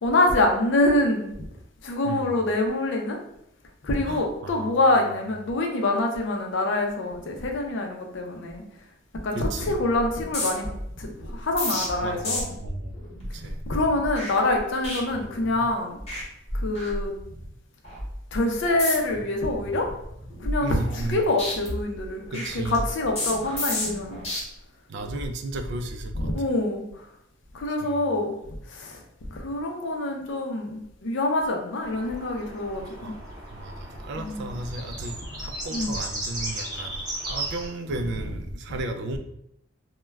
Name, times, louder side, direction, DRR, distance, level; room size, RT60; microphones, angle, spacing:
voice 1, 0.0-1.4 1.8-3.2 3.8-8.6 9.2-10.7 11.0-12.6 13.7-16.0 16.5-17.1 18.3-19.9 20.4-24.2 26.2-26.8 27.5-28.3 28.7-29.0 29.3-33.1 34.2-34.4 35.7-35.9, left 2 dB, 65° left, 2 dB, 0.5 m, -25 dB
voice 2, 2.0-2.4 4.0-4.8 9.3-9.8 12.0-13.0 13.3-13.6 20.6-21.3 22.3-22.8 24.9-26.3 27.7-28.1 32.8-33.2 33.5-39.2, right 2 dB, 60° right, 6 dB, 0.3 m, -35 dB
sound 1, 9.4-9.7 9.9-15.7 16.0-16.2 16.5-17.4 17.8-18.1 18.7-19.2 19.6-21.1 21.4-24.4 24.9-25.3, left 1 dB, 35° left, 0.9 m, -32 dB
sound 2, 31.8-37.7, right 1 dB, 20° right, 0.8 m, -35 dB
2.3 x 2.1 x 3.1 m, 0.76 s
head